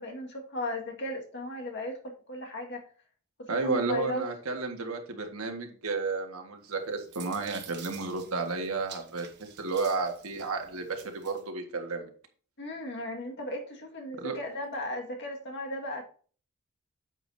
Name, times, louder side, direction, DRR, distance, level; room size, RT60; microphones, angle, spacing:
voice 1, 0.0-2.8 3.4-4.2 12.6-16.0, left 1 dB, 55° left, 2 dB, 1.9 m, -36 dB
voice 2, 3.5-12.1 14.2-14.4, right 3 dB, 80° right, 4 dB, 1.7 m, -32 dB
sound 1, 6.7-11.4, right 9 dB, 55° right, 1.3 m, -49 dB
9.0 x 8.2 x 2.7 m, 0.43 s
head